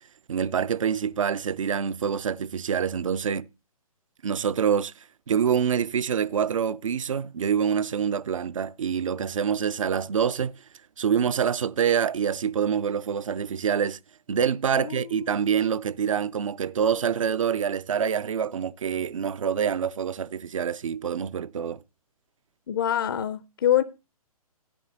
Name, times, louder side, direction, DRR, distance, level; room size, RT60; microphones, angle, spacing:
voice 1, 0.3-3.5 4.2-4.9 5.3-10.5 11.0-14.0 14.3-21.8, right 7 dB, 60° right, 0.5 m, -26 dB
voice 2, 14.7-15.3 22.7-23.8, left 11 dB, 35° left, 0.5 m, -25 dB
14.5 x 10.0 x 2.7 m
figure-of-eight pair, 125°, 19 cm